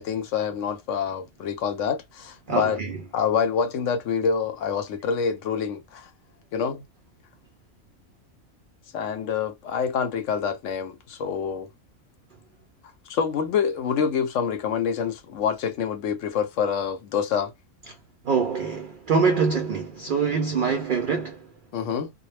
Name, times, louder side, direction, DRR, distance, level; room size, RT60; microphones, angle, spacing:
voice 1, 0.0-2.8 3.1-6.1 6.5-6.8 8.9-11.7 13.1-17.5 21.7-22.1, left 7 dB, 70° left, 0.9 m, -26 dB
voice 2, 2.5-2.9 18.2-21.4, right 5 dB, 70° right, 0.4 m, -24 dB
2.2 x 2.0 x 3.2 m
omnidirectional pair, 1.4 m